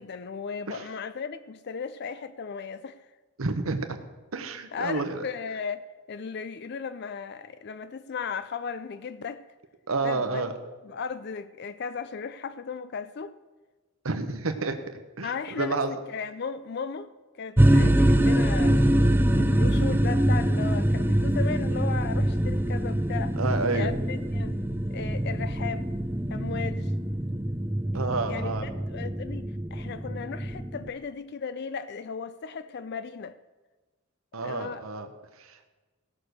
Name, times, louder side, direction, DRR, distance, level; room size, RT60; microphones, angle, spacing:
voice 1, 0.0-3.1 4.7-9.4 10.0-10.4 10.8-13.4 15.2-15.8 16.1-17.1 17.3-18.8 19.3-23.4 23.7-24.6 24.9-25.9 26.3-26.9 27.9-33.4 34.4-34.8, left 5 dB, 50° left, 13 dB, 0.4 m, -36 dB
voice 2, 3.4-4.0 4.3-5.3 9.9-10.5 14.0-14.8 15.2-15.9 17.7-17.9 23.4-23.9 27.9-28.7 34.3-35.1 35.4-35.7, right 3 dB, 80° right, 7 dB, 1.0 m, -30 dB
sound 1, 17.6-30.9, right 1 dB, 10° right, 0.5 m, -24 dB
16.5 x 6.4 x 6.6 m, 1.3 s
head